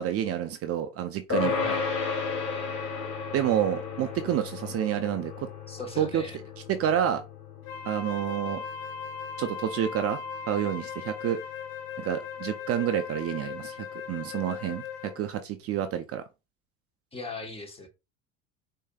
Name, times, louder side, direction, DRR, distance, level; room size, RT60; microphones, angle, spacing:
voice 1, 0.0-1.5 3.3-5.5 6.0-6.2 6.7-7.2 7.8-8.6 9.4-10.2 10.5-11.4 12.0-16.2, right 10 dB, 40° right, 0.5 m, -29 dB
sound 1, 1.3-11.0, left 5 dB, 40° left, 2.2 m, -34 dB
voice 2, 1.4-1.8 5.7-6.4 17.1-17.9, left 2 dB, 15° left, 1.1 m, -38 dB
Wind instrument woodwind instrument, 7.6-15.3, left 7 dB, 60° left, 1.0 m, -38 dB
4.6 x 2.7 x 2.3 m
hypercardioid pair, 85°, 36 cm